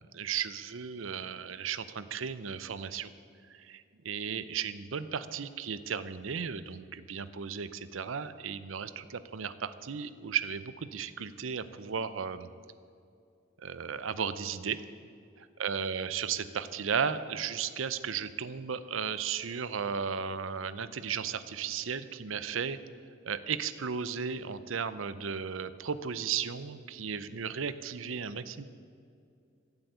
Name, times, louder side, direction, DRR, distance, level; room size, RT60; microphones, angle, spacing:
voice 1, 0.1-3.1 3.5-12.5 13.6-14.8 15.4-22.8 23.2-28.6, right 7 dB, 80° right, 14 dB, 0.6 m, -35 dB
14.0 x 8.1 x 7.9 m, 2.4 s
head